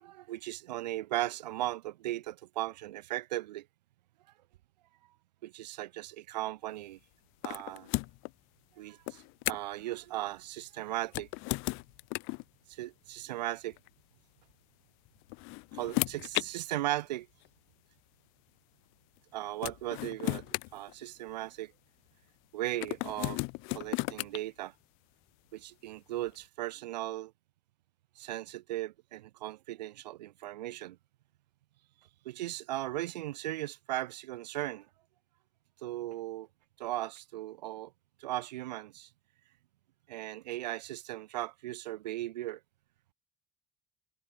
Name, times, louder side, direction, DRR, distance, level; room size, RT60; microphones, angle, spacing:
voice 1, 0.0-3.6 5.4-7.0 7.4-7.9 8.8-11.3 12.7-13.8 15.7-17.3 19.3-21.7 22.5-23.4 23.7-24.7 25.5-27.3 28.2-31.0 32.2-34.9 35.8-36.5 36.8-37.9 38.2-39.1 40.1-42.6, right 15 dB, 90° right, 1.2 m, -37 dB
sound 1, 7.4-8.3 9.1-9.8 11.0-12.4 13.7-13.9 15.1-16.5 17.5-17.6 19.2-19.3 19.6-21.5 22.8-24.4, left 29 dB, 75° left, 1.0 m, -35 dB
hypercardioid pair, 65°, 21 cm